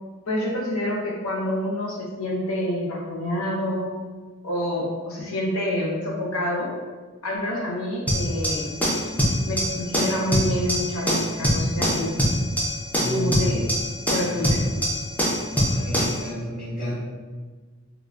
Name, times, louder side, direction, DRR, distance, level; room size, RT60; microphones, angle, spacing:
voice 1, 0.3-3.9 4.4-6.8 7.2-8.7 9.4-12.2 13.1-13.6 14.1-14.6, left 1 dB, 75° left, -3 dB, 0.8 m, -27 dB
sound 1, 8.1-16.2, equal, 10° left, 0.5 m, -24 dB
voice 2, 13.0-13.7 14.3-14.6 15.5-17.0, equal, 45° left, -14 dB, 1.3 m, -30 dB
3.7 x 2.3 x 2.3 m, 1.4 s
head